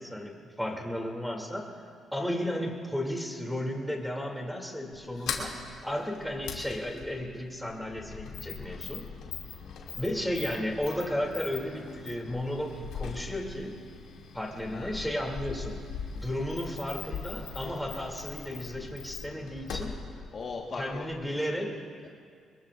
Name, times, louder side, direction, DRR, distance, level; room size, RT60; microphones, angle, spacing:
voice 1, 0.0-1.7 2.1-5.5 5.8-9.0 10.0-13.7 14.3-15.8 16.1-19.9 20.8-21.9, equal, ahead, 0 dB, 2.8 m, -34 dB
Sliding door, 4.9-21.3, left 6 dB, 85° left, 2.5 m, -41 dB
voice 2, 8.6-9.0 9.6-9.9 14.6-15.0 19.5-19.6 20.3-21.1, left 4 dB, 45° left, 0 dB, 1.6 m, -41 dB
24.0 x 21.5 x 2.6 m, 2.2 s
cardioid pair, 90°, 0 cm